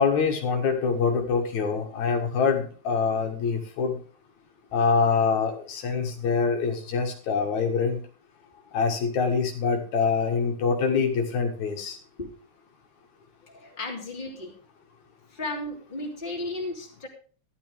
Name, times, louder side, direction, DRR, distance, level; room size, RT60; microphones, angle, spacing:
voice 1, 0.0-4.0 4.7-8.0 8.7-12.0, left 5 dB, 70° left, 3 dB, 3.0 m, -25 dB
voice 2, 13.4-14.5 15.3-17.1, left 2 dB, 15° left, 0 dB, 2.9 m, -35 dB
12.5 x 11.5 x 3.4 m, 0.40 s
omnidirectional pair, 3.4 m